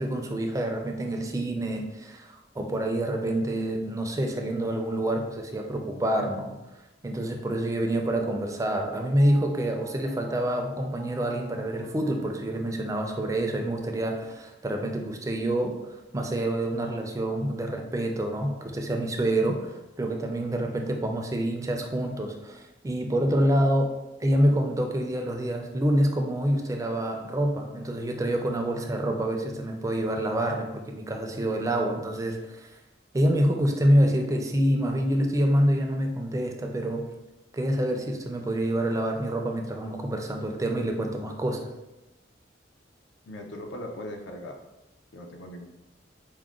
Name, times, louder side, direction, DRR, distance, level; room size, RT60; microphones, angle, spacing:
voice 1, 0.0-6.6 7.0-23.9 24.2-32.7 33.1-37.1 37.5-41.7, right 1 dB, 15° right, 3 dB, 0.4 m, -27 dB
Mallet percussion, 7.9-13.4 13.7-13.8, right 1 dB, 80° right, 0.6 m, -49 dB
voice 2, 43.3-44.6 45.1-45.7, left 1 dB, 70° left, 3 dB, 0.5 m, -39 dB
4.7 x 2.1 x 3.6 m, 1.0 s
head